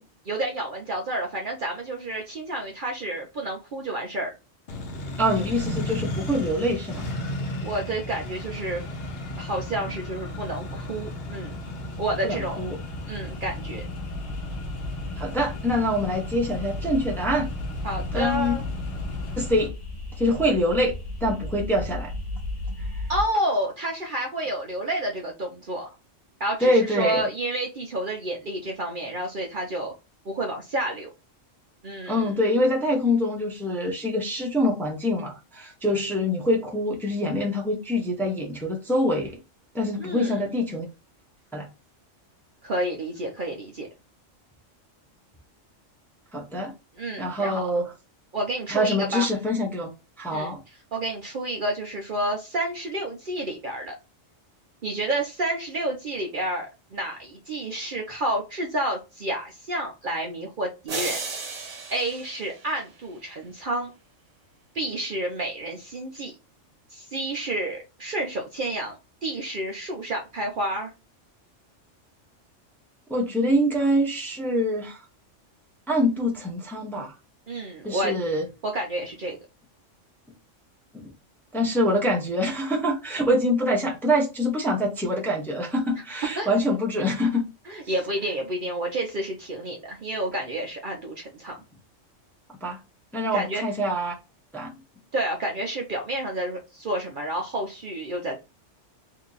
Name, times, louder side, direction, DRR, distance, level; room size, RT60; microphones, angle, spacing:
voice 1, 0.3-4.3 7.6-8.8 9.4-11.6 12.0-12.7 13.1-13.9 17.8-18.6 23.1-25.9 26.4-29.9 30.3-31.1 31.8-32.3 40.0-40.4 42.6-43.9 47.0-47.6 48.3-49.3 50.3-50.5 50.9-53.9 54.8-61.2 61.9-63.9 64.7-66.3 66.9-70.9 77.5-78.1 78.6-79.4 85.9-86.0 86.4-86.5 87.7-91.6 93.3-93.6 95.1-98.4, right 1 dB, 50° right, 0.7 m, -30 dB
Accelerating revving vroom, 4.7-19.7, left 1 dB, 55° left, 0.9 m, -35 dB
voice 2, 5.2-7.0 12.2-12.8 15.2-17.5 18.1-18.5 19.4-19.7 20.2-20.9 21.2-22.1 26.6-27.2 32.1-39.3 39.7-40.8 41.5-41.7 46.3-46.7 47.2-47.9 48.7-49.9 50.2-50.6 73.1-75.0 75.9-77.1 77.8-78.4 80.9-81.1 81.5-87.8 92.6-92.8 93.1-94.1 94.5-94.7, equal, ahead, 0.7 m, -25 dB
sound 1, 11.5-23.2, left 2 dB, 30° left, 1.2 m, -35 dB
sound 2, 60.9-63.2, right 4 dB, 75° right, 1.4 m, -34 dB
2.9 x 2.6 x 3.8 m
omnidirectional pair, 1.3 m